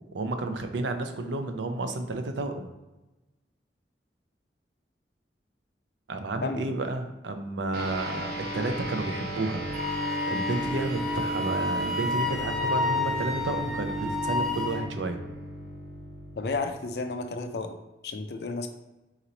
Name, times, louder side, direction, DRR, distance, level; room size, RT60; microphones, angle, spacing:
voice 1, 0.1-2.7 6.1-9.6 10.3-15.2, right 2 dB, 90° right, 6 dB, 0.5 m, -31 dB
sound 1, 7.7-17.5, right 1 dB, 60° right, 1.0 m, -35 dB
Wind instrument woodwind instrument, 9.7-14.9, left 3 dB, ahead, 0.4 m, -30 dB
voice 2, 16.4-17.8 18.0-18.7, left 3 dB, 65° left, 7 dB, 0.4 m, -32 dB
4.0 x 3.0 x 4.0 m, 1.0 s
head